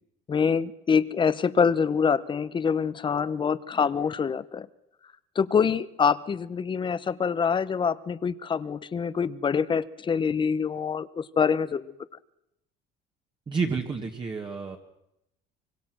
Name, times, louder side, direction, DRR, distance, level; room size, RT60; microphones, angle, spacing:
voice 1, 0.3-4.7 5.4-11.9, left 6 dB, 25° left, 16 dB, 0.9 m, -25 dB
voice 2, 13.5-14.8, right 5 dB, 25° right, 1 dB, 1.8 m, -30 dB
25.0 x 23.5 x 6.2 m, 0.84 s
cardioid pair, 145°, 19 cm